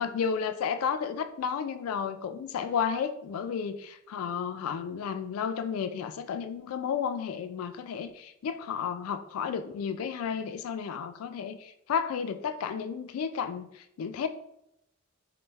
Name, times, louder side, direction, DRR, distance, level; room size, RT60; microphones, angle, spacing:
voice 1, 0.0-14.3, left 7 dB, 85° left, 11 dB, 0.3 m, -32 dB
3.0 x 2.1 x 3.3 m, 0.80 s
head